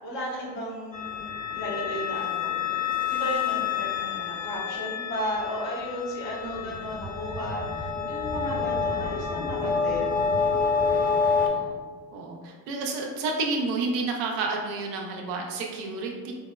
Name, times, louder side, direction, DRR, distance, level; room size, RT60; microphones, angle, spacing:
voice 1, 0.0-10.4, equal, 70° left, -6 dB, 1.4 m, -35 dB
sound 1, 0.9-11.5, left 5 dB, 15° left, 0.8 m, -28 dB
voice 2, 6.4-6.8 8.0-8.1 8.5-8.8 9.9-10.2 11.0-11.8 12.1-16.3, right 3 dB, 85° right, 0 dB, 0.7 m, -31 dB
4.6 x 2.0 x 2.2 m, 1.5 s
hypercardioid pair, 65°, 47 cm